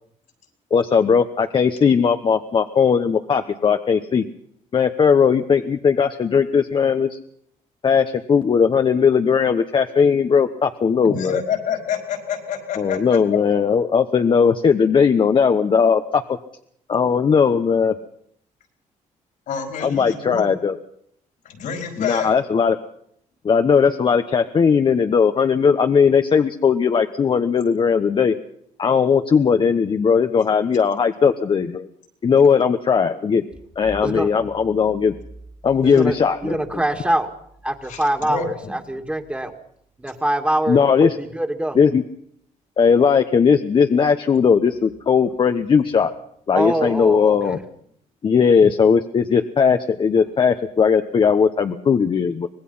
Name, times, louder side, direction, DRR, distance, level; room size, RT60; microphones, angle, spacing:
voice 1, 0.7-4.2 4.7-7.2 7.8-11.4 12.8-16.2 16.9-17.9 19.8-20.8 22.0-22.8 23.4-28.3 28.8-31.9 32.2-33.4 33.8-35.1 35.6-36.6 40.7-41.1 41.7-42.0 42.8-46.1 46.5-47.6 48.2-52.5, left 6 dB, 40° left, 6 dB, 1.1 m, -18 dB
voice 2, 11.0-13.4 19.5-20.5 21.4-22.4 37.8-38.7, left 7 dB, 80° left, 4 dB, 5.2 m, -28 dB
voice 3, 35.8-36.2 36.4-37.3 37.6-39.5 40.0-41.8 46.5-47.6, right 1 dB, 10° right, 4 dB, 2.3 m, -24 dB
25.0 x 19.5 x 5.7 m, 0.69 s
cardioid pair, 120°, 13 cm